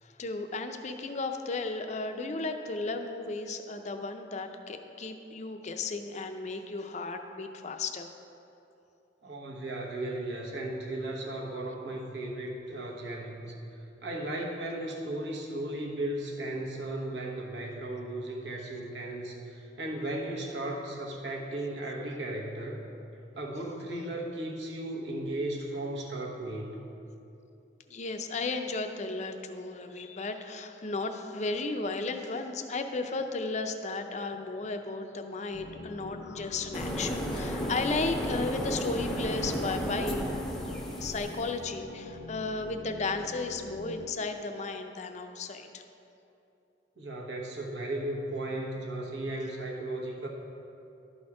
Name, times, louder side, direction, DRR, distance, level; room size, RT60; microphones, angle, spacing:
voice 1, 0.0-8.1 27.9-40.3 41.0-45.8, left 3 dB, 40° left, 6 dB, 0.5 m, -34 dB
voice 2, 9.2-13.5 14.0-22.8 23.3-26.8 47.0-50.3, right 1 dB, 70° right, -1 dB, 1.2 m, -36 dB
sound 1, 35.5-44.1, left 2 dB, 80° left, 0.7 m, -44 dB
sound 2, 36.7-41.5, equal, ahead, 0.7 m, -33 dB
11.5 x 4.3 x 4.8 m, 2.8 s
head